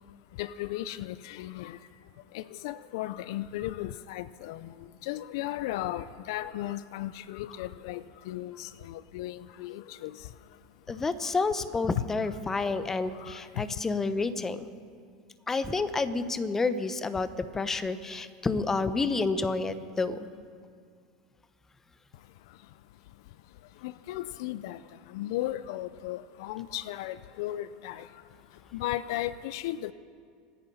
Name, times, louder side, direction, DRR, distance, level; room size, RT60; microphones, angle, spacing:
voice 1, 0.4-1.8 2.3-4.7 5.0-10.1 13.3-13.4 23.8-24.8 25.1-28.0 28.7-29.9, left 14 dB, 70° left, 16 dB, 0.5 m, -35 dB
voice 2, 10.9-14.7 15.5-20.2, left 3 dB, 15° left, 12 dB, 0.9 m, -29 dB
25.5 x 10.0 x 5.6 m, 2.2 s
supercardioid pair, 110°, 2 cm